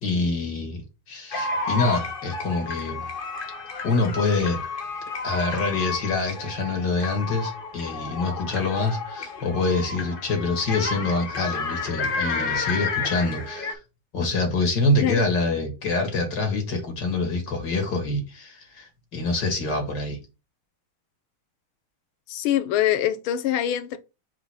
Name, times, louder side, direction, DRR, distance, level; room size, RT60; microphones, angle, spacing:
voice 1, 0.0-3.1 3.8-4.6 5.2-13.8 14.1-20.2, left 3 dB, 60° left, 2.2 m, -26 dB
sound 1, 1.3-13.7, left 4 dB, 40° left, 0.8 m, -31 dB
voice 2, 22.3-24.0, left 11 dB, 85° left, 1.6 m, -24 dB
4.9 x 3.7 x 5.5 m
omnidirectional pair, 2.2 m